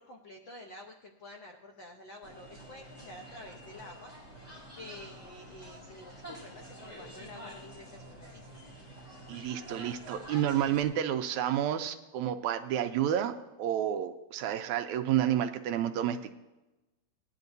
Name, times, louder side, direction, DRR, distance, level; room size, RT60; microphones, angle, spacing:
voice 1, 0.0-8.6, left 1 dB, 85° left, 2 dB, 1.0 m, -49 dB
sound 1, 2.2-10.8, equal, 15° left, 4.1 m, -48 dB
voice 2, 9.3-16.3, right 10 dB, 80° right, 7 dB, 1.8 m, -30 dB
18.5 x 10.5 x 2.7 m, 1.0 s
omnidirectional pair, 3.5 m